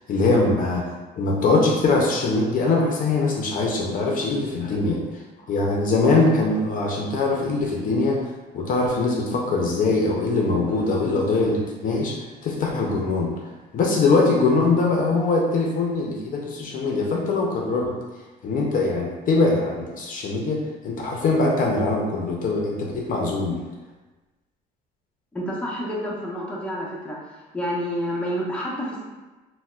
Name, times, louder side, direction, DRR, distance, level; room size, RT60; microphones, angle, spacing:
voice 1, 0.0-5.0 5.5-8.2 8.5-13.3 13.7-18.0 18.4-23.6, left 3 dB, 55° left, -1 dB, 0.5 m, -22 dB
voice 2, 25.3-27.2 27.5-29.0, equal, 5° left, -4 dB, 0.7 m, -29 dB
4.0 x 2.0 x 2.3 m, 1.2 s
cardioid pair, 110°, 17 cm